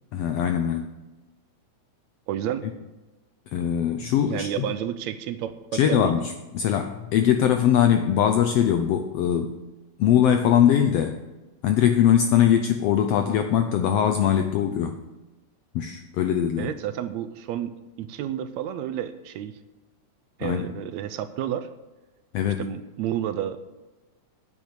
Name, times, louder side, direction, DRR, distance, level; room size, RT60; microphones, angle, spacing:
voice 1, 0.1-0.9 3.5-4.7 5.7-9.5 10.0-11.2 11.6-15.0 15.7-16.7 20.4-20.7 22.3-22.7, left 9 dB, 85° left, 7 dB, 1.4 m, -21 dB
voice 2, 2.3-2.6 4.3-6.1 16.6-17.7 18.0-19.5 20.4-21.7 22.6-23.6, right 11 dB, 75° right, 11 dB, 1.8 m, -30 dB
9.9 x 7.3 x 7.9 m, 1.1 s
omnidirectional pair, 3.5 m